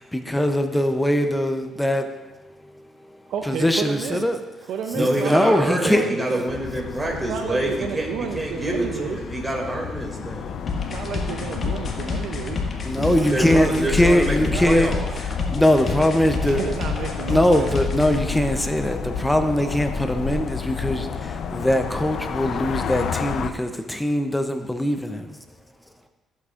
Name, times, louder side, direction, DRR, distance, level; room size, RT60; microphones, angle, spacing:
voice 1, 0.0-2.6 3.0-3.2 3.5-4.4 5.0-6.0 12.8-14.9 15.5-16.6 17.3-25.4, left 1 dB, 10° left, 7 dB, 0.6 m, -22 dB
voice 2, 3.3-4.3 4.6-6.4 7.1-9.2 10.9-14.7 16.4-17.8, right 7 dB, 80° right, 4 dB, 0.6 m, -32 dB
voice 3, 4.9-10.6 13.3-15.1, right 1 dB, 20° right, 0 dB, 2.4 m, -26 dB
sound 1, 6.5-23.5, left 6 dB, 65° left, 0.6 m, -31 dB
sound 2, 10.7-18.2, left 4 dB, 50° left, 1.7 m, -29 dB
14.5 x 8.3 x 2.5 m, 1.1 s
cardioid pair, 90°, 0 cm